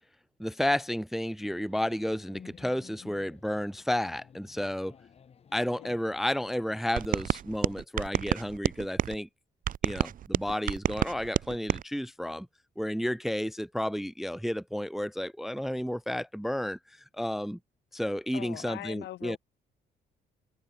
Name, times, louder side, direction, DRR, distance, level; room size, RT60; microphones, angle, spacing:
voice 1, 0.4-4.9 5.5-9.3 9.8-12.5 12.8-16.8 17.2-17.6 17.9-19.4, left 1 dB, ahead, 0.4 m, -32 dB
sound 1, 1.4-7.3, left 7 dB, 35° left, 6.3 m, -55 dB
sound 2, 7.0-9.2 9.7-11.8, right 10 dB, 50° right, 1.8 m, -29 dB
voice 2, 18.3-19.4, left 15 dB, 85° left, 3.5 m, -41 dB
cardioid pair, 160°, 17 cm